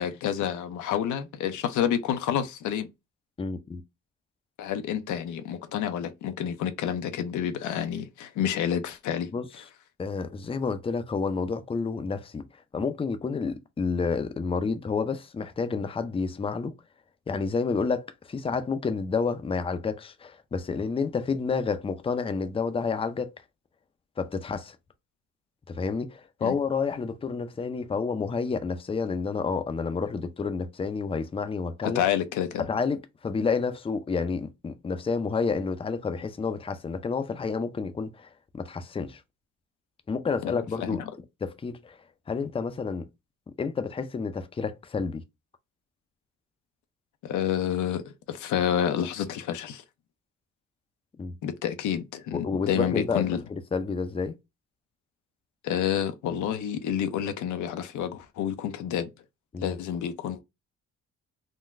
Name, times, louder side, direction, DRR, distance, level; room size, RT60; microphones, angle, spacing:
voice 1, 0.0-2.9 4.6-9.3 26.4-26.6 31.8-32.7 40.4-41.0 47.2-48.0 48.3-49.8 51.4-53.4 55.6-59.1 59.6-60.4, left 9 dB, 80° left, 0.6 m, -29 dB
voice 2, 3.4-3.8 9.3-9.5 10.0-12.4 12.7-16.7 17.3-23.3 24.2-24.8 25.7-32.0 32.7-38.3 38.5-39.2 40.1-41.0 41.4-42.0 42.3-43.0 43.6-45.2 51.2-51.3 52.3-53.2 53.5-54.3 59.5-59.8, left 5 dB, 20° left, 0.5 m, -29 dB
3.8 x 2.2 x 2.5 m
cardioid pair, 90°, 30 cm